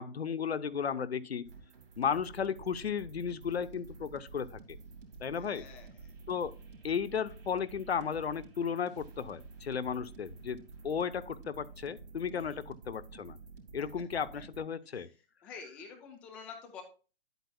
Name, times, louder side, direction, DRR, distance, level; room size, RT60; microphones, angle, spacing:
voice 1, 0.0-1.5 2.0-4.6 5.2-5.7 6.3-6.6 6.8-13.4 13.7-15.1, left 7 dB, 85° left, 0.8 m, -34 dB
sound 1, 1.4-14.6, right 4 dB, 60° right, 2.7 m, -51 dB
voice 2, 5.4-6.1 12.3-12.6 14.3-14.4 15.4-16.8, left 6 dB, 5° left, 0.3 m, -48 dB
11.0 x 8.0 x 2.2 m
hypercardioid pair, 135°, 31 cm